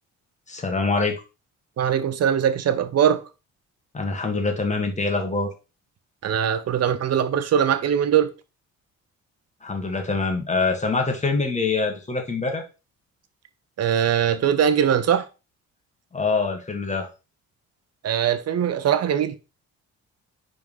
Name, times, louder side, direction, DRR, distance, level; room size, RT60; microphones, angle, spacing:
voice 1, 0.5-1.2 3.9-5.5 9.6-12.6 16.1-17.1, left 3 dB, 25° left, 1.8 m, -24 dB
voice 2, 1.8-3.2 6.2-8.3 13.8-15.3 18.0-19.4, right 9 dB, 55° right, 0.9 m, -21 dB
4.7 x 3.9 x 5.4 m
cardioid pair, 90°, 30 cm